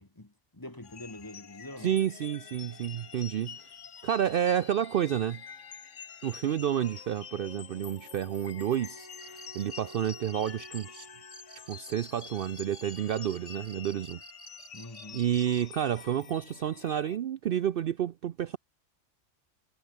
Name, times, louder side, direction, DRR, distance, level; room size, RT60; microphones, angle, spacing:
voice 1, 0.0-1.9 14.7-15.2, left 1 dB, 20° left, 1.6 m, -45 dB
sound 1, 0.8-17.2, left 7 dB, 80° left, 1.6 m, -47 dB
voice 2, 1.8-3.7 4.0-5.4 6.2-11.1 11.7-14.2 15.1-18.6, right 10 dB, 60° right, 0.7 m, -30 dB
Wind instrument woodwind instrument, 7.8-12.8, right 1 dB, 20° right, 3.1 m, -54 dB
Cricket, 9.1-15.7, right 5 dB, 40° right, 0.3 m, -51 dB
omnidirectional pair, 1.2 m